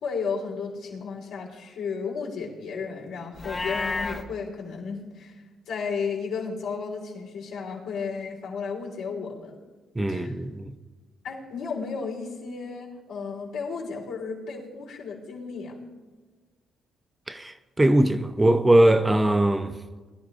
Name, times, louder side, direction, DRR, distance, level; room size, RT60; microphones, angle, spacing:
voice 1, 0.0-9.5 10.1-10.4 11.2-15.7, left 5 dB, 85° left, 3.4 m, -33 dB
Livestock farm animals working animals, 3.3-4.2, left 3 dB, 35° left, 0.8 m, -30 dB
voice 2, 10.0-10.7 17.3-19.7, right 1 dB, 15° right, 0.6 m, -21 dB
22.0 x 12.0 x 2.5 m
cardioid pair, 90°, 0 cm